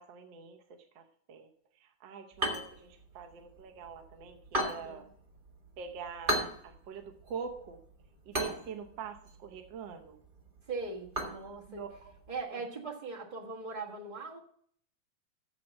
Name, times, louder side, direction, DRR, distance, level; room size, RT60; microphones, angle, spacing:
voice 1, 0.0-1.5 1.8-5.1 5.8-7.8 8.3-10.2 11.7-12.1 12.5-12.6, right 6 dB, 70° right, 4 dB, 1.1 m, -44 dB
sound 1, 2.3-12.4, equal, 25° right, 1.3 m, -39 dB
voice 2, 10.6-11.8 12.3-14.4, right 3 dB, 40° right, -2 dB, 0.6 m, -40 dB
7.5 x 7.5 x 7.4 m, 0.62 s
omnidirectional pair, 3.4 m